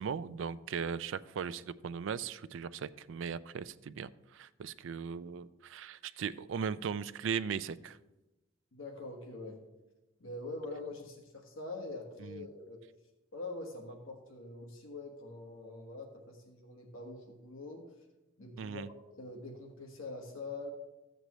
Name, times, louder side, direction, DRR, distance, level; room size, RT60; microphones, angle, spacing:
voice 1, 0.0-8.0 12.2-12.5 18.6-18.9, right 6 dB, 65° right, 15 dB, 0.4 m, -38 dB
voice 2, 8.7-9.6 10.2-12.8 13.3-17.9 18.4-18.9 19.2-20.7, left 2 dB, 75° left, 1 dB, 1.4 m, -44 dB
13.5 x 8.0 x 3.1 m, 1.0 s
head